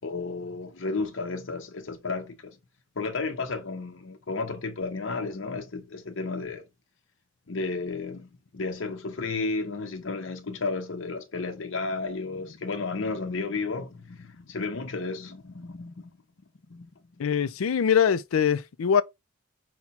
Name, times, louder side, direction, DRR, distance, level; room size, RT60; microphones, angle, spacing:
voice 1, 0.0-2.6 3.0-6.7 7.5-16.1 16.7-16.9, left 3 dB, 65° left, 0.8 m, -33 dB
voice 2, 17.2-19.0, left 7 dB, 85° left, 0.4 m, -23 dB
5.8 x 2.2 x 4.0 m
head